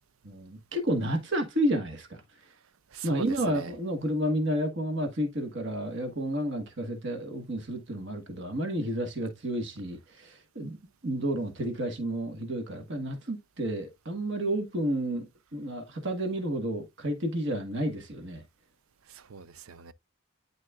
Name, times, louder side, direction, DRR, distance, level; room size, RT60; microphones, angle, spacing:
voice 1, 0.2-2.2 3.0-10.8 11.0-18.4, right 1 dB, 55° right, 1.5 m, -31 dB
voice 2, 2.9-3.7 19.1-19.9, right 6 dB, 85° right, 0.6 m, -40 dB
11.0 x 4.1 x 2.4 m
head